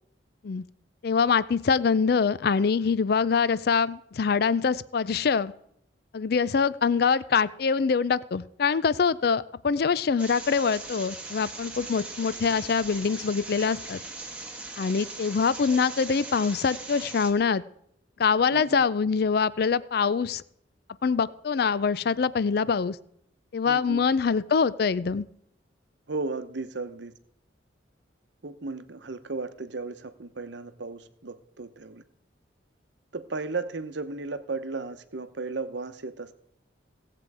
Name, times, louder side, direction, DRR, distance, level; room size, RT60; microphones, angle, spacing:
voice 1, 1.0-5.5 6.1-14.0 14.8-17.6 18.2-20.4 21.0-23.0 23.5-25.2, left 5 dB, 55° left, 18 dB, 0.4 m, -24 dB
sound 1, 10.2-17.3, right 2 dB, 5° right, 1.3 m, -40 dB
voice 2, 18.5-18.8 23.7-24.0 26.1-27.1 28.4-32.0 33.1-36.4, right 3 dB, 70° right, 11 dB, 0.8 m, -35 dB
17.5 x 7.6 x 4.8 m, 0.72 s
head